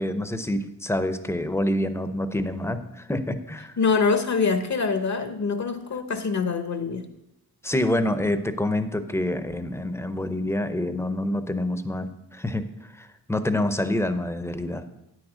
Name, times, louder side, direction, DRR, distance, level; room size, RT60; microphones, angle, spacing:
voice 1, 0.0-3.7 7.6-12.6 12.9-14.8, left 1 dB, 5° left, 10 dB, 0.6 m, -27 dB
voice 2, 3.8-7.1, left 4 dB, 45° left, 8 dB, 0.7 m, -24 dB
9.4 x 6.3 x 5.0 m, 0.88 s
wide cardioid pair, 95°, 39 cm